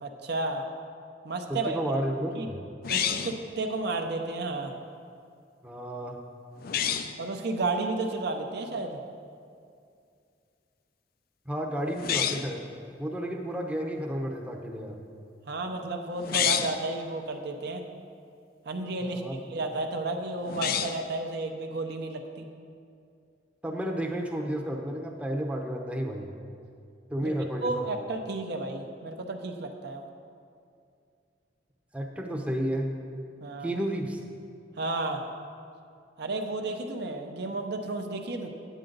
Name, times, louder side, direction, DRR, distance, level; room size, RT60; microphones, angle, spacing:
voice 1, 0.0-0.6 1.2-1.8 2.4-2.5 2.9-4.7 7.2-9.0 15.5-17.8 18.7-22.5 27.2-27.3 27.6-30.1 33.4-33.7 34.8-35.2 36.2-38.5, right 2 dB, 65° right, 4 dB, 0.7 m, -32 dB
voice 2, 1.5-2.6 5.6-6.2 11.5-12.7 13.0-15.0 19.0-19.4 23.6-26.3 27.1-27.9 31.9-32.9 33.6-34.2, right 1 dB, 5° right, 0 dB, 0.7 m, -32 dB
sound 1, 2.8-3.5 6.6-7.2 11.9-12.6 16.2-16.8 20.4-21.1, left 8 dB, 55° left, 0.4 m, -28 dB
9.0 x 8.7 x 3.9 m, 2.4 s
head